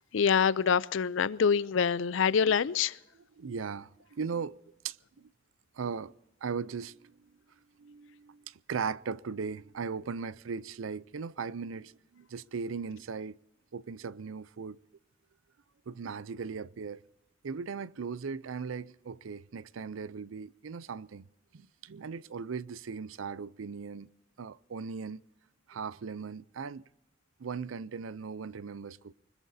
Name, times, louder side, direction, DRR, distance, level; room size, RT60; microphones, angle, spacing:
voice 1, 0.1-2.9, left 6 dB, 70° left, 0.5 m, -25 dB
voice 2, 3.4-4.5 4.8-5.3 5.8-6.1 6.4-7.1 7.8-13.4 13.7-14.8 15.9-17.0 17.4-21.3 21.5-24.1 24.4-25.2 25.7-26.8 27.4-29.1, right 5 dB, 85° right, 0.5 m, -38 dB
24.5 x 21.5 x 2.7 m
head